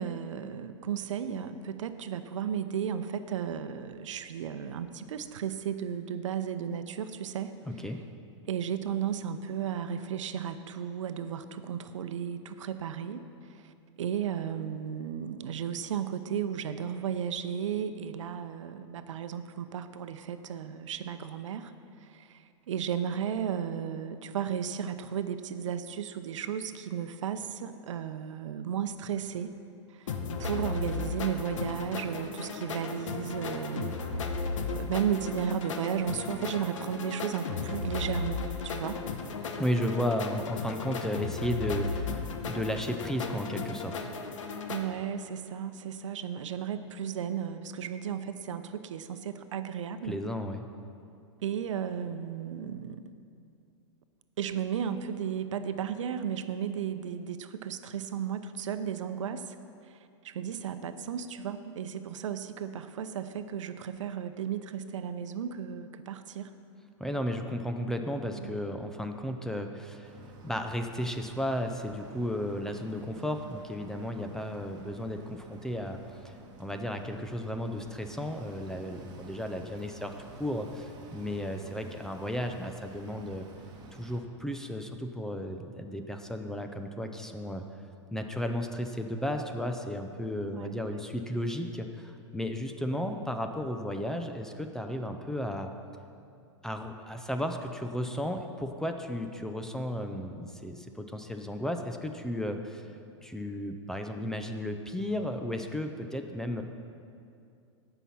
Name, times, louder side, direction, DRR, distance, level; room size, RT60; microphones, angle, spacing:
voice 1, 0.0-7.5 7.8-8.0 8.5-21.7 22.0-29.5 29.9-39.0 44.7-50.2 51.4-53.1 54.4-59.6 59.8-66.5 68.3-68.6 90.4-90.9, right 8 dB, 80° right, 10 dB, 0.7 m, -34 dB
voice 2, 7.7-8.0 39.6-44.0 50.1-50.6 67.0-70.1 70.4-76.0 76.2-76.3 76.6-80.1 80.4-83.5 83.9-87.7 88.1-95.7 96.6-102.9 103.2-106.6, equal, 5° left, 5 dB, 0.5 m, -34 dB
sound 1, 30.1-44.8, left 4 dB, 85° left, 1.1 m, -35 dB
sound 2, 70.0-84.2, right 2 dB, 25° right, 1.4 m, -51 dB
15.5 x 5.9 x 5.6 m, 2.5 s
hypercardioid pair, 140°, 16 cm